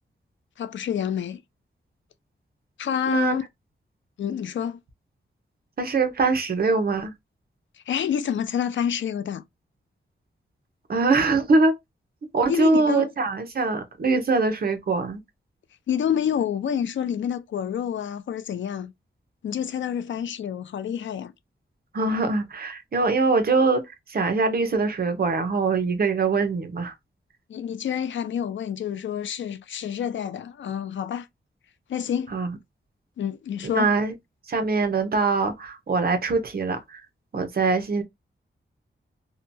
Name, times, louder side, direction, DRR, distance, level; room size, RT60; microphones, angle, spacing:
voice 1, 0.6-1.4 2.8-3.4 4.2-4.8 7.9-9.4 12.5-13.1 15.9-18.9 19.4-21.3 27.5-31.3 31.9-32.3 33.2-33.9, left 8 dB, 70° left, 0.4 m, -28 dB
voice 2, 3.1-3.4 5.8-7.1 10.9-11.7 12.3-15.2 21.9-27.0 32.3-32.6 33.7-34.1 34.5-37.0 37.3-38.0, right 3 dB, 50° right, 0.7 m, -23 dB
2.7 x 2.2 x 2.6 m
wide cardioid pair, 135°, 20 cm